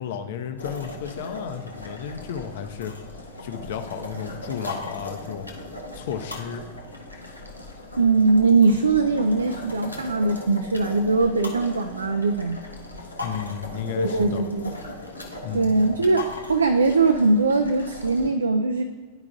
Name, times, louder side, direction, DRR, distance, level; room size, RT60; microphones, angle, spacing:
voice 1, 0.0-5.5 5.9-6.6 13.2-14.4 15.4-15.7, left 8 dB, 55° left, 7 dB, 0.6 m, -33 dB
sound 1, 0.6-18.3, left 2 dB, 85° left, 0.8 m, -38 dB
voice 2, 8.0-12.6 14.0-14.7 15.5-18.8, right 3 dB, 75° right, 7 dB, 0.3 m, -21 dB
11.0 x 4.8 x 2.4 m, 1.5 s
figure-of-eight pair, 90°, 0 cm